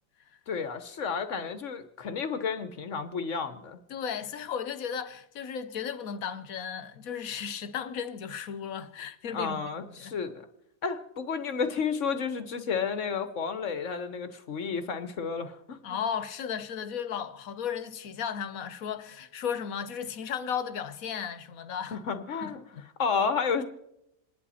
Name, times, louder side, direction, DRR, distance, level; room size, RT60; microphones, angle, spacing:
voice 1, 0.5-3.8 9.3-10.5 10.8-16.0 21.9-22.6 23.0-23.6, left 5 dB, 65° left, 1.3 m, -31 dB
voice 2, 3.9-9.6 10.0-10.1 15.8-22.0 22.4-22.8, left 7 dB, 90° left, 1.4 m, -35 dB
28.0 x 11.0 x 4.2 m
omnidirectional pair, 1.4 m